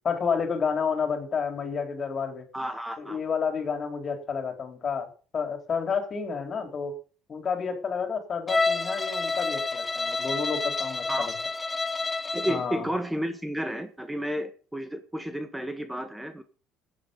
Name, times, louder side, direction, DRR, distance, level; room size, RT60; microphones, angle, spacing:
voice 1, 0.0-2.5 3.0-5.1 5.3-6.9 7.3-11.3 12.5-12.9, left 6 dB, 40° left, 5 dB, 4.1 m, -30 dB
voice 2, 2.5-3.2 11.1-11.3 12.3-16.4, equal, 5° right, 8 dB, 1.7 m, -32 dB
Bowed string instrument, 8.5-12.7, left 3 dB, 20° left, 1.1 m, -29 dB
13.5 x 9.3 x 5.4 m, 0.38 s
hypercardioid pair, 60°, 0 cm